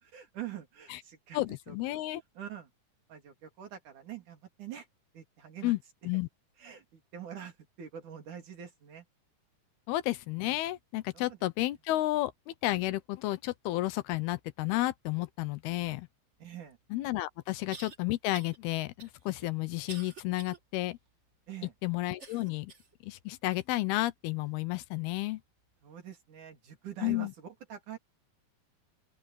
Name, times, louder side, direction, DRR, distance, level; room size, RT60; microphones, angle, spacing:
voice 1, 0.0-2.0 2.3-2.7 3.1-4.9 5.1-5.7 6.6-9.1 11.1-11.5 16.4-16.8 17.5-17.6 21.5-21.7 25.8-28.0, right 9 dB, 55° right, 4.2 m, -45 dB
voice 2, 1.3-2.2 5.6-5.8 6.0-6.3 9.9-16.1 16.9-21.0 21.8-22.7 23.0-25.4 27.0-27.3, left 17 dB, 85° left, 2.8 m, -32 dB
sound 1, 16.7-16.8 17.7-18.0 18.3-18.6 19.0-20.6 21.1-21.2 22.2-22.9 23.5-23.6 24.4-24.5, right 4 dB, 85° right, 0.6 m, -49 dB
open air
omnidirectional pair, 4.4 m